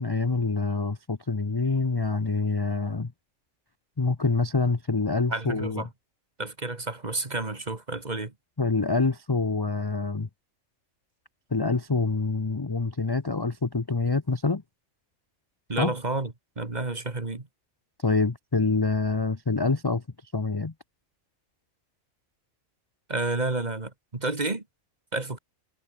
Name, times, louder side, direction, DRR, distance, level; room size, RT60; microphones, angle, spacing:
voice 1, 0.0-3.1 4.0-5.8 8.6-10.3 11.5-14.6 15.8-15.9 18.0-20.0 20.3-20.7, left 3 dB, 20° left, 0.7 m, -26 dB
voice 2, 5.3-5.9 6.4-8.3 15.7-17.5 23.1-24.6 25.1-25.4, right 3 dB, 30° right, 2.1 m, -30 dB
omnidirectional pair, 1.4 m